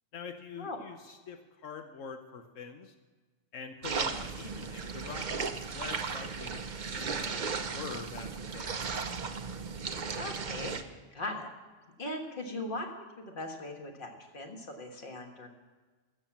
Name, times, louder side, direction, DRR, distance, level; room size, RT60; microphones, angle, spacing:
voice 1, 0.1-2.9 3.5-9.0, left 6 dB, 85° left, 6 dB, 1.2 m, -45 dB
sound 1, 3.8-10.8, right 5 dB, 45° right, 0.7 m, -36 dB
voice 2, 10.2-11.5 12.0-12.9 13.2-15.5, left 2 dB, 45° left, 3 dB, 1.7 m, -39 dB
14.0 x 7.5 x 7.2 m, 1.3 s
omnidirectional pair, 1.3 m